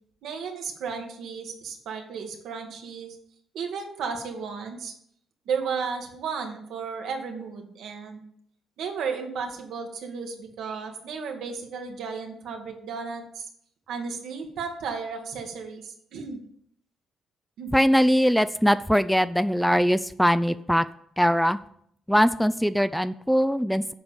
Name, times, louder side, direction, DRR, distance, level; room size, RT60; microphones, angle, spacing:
voice 1, 0.2-3.2 3.5-4.9 5.4-8.2 8.8-13.5 13.9-16.4 17.6-17.7, right 5 dB, 75° right, 3 dB, 1.7 m, -34 dB
voice 2, 17.7-20.8 21.2-21.6 22.1-23.9, equal, ahead, 14 dB, 0.3 m, -21 dB
8.1 x 4.9 x 7.0 m, 0.69 s
cardioid pair, 90°, 0 cm